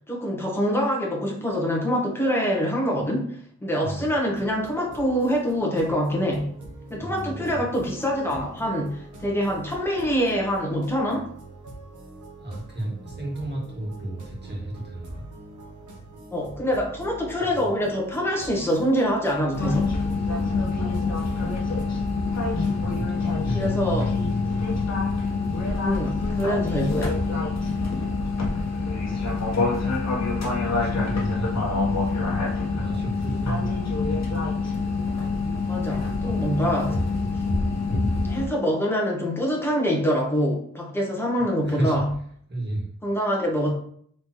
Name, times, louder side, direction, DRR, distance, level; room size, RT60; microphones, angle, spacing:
voice 1, 0.1-6.5 6.9-11.3 16.3-19.9 23.5-24.1 25.8-27.1 35.7-37.0 38.2-42.1 43.0-43.7, equal, 5° left, -2 dB, 1.1 m, -25 dB
voice 2, 3.8-4.2 6.9-7.6 12.4-15.2 20.2-21.0 21.3-21.4 22.8-24.8 30.8-32.2 32.7-34.4 37.8-38.0 41.6-42.0 42.5-42.9, right 1 dB, 35° right, -3 dB, 1.8 m, -33 dB
sound 1, 4.3-23.0, right 2 dB, 70° right, 1.1 m, -43 dB
sound 2, 19.5-38.5, left 3 dB, 55° left, 1.1 m, -26 dB
4.2 x 3.4 x 3.1 m, 0.62 s
cardioid pair, 85°, 31 cm